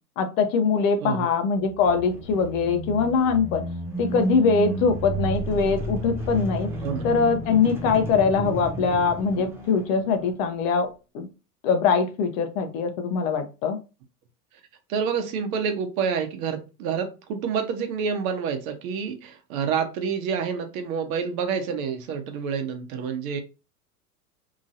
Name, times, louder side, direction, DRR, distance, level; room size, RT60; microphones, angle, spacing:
voice 1, 0.2-3.6 4.0-6.7 7.0-10.9 11.1-11.3 11.6-13.8, left 5 dB, 55° left, 7 dB, 0.8 m, -22 dB
sound 1, 1.6-10.4, right 2 dB, 5° right, 0.3 m, -32 dB
voice 2, 14.9-23.4, right 6 dB, 60° right, 6 dB, 0.9 m, -28 dB
3.0 x 2.6 x 2.5 m, 0.30 s
hypercardioid pair, 105°, 46 cm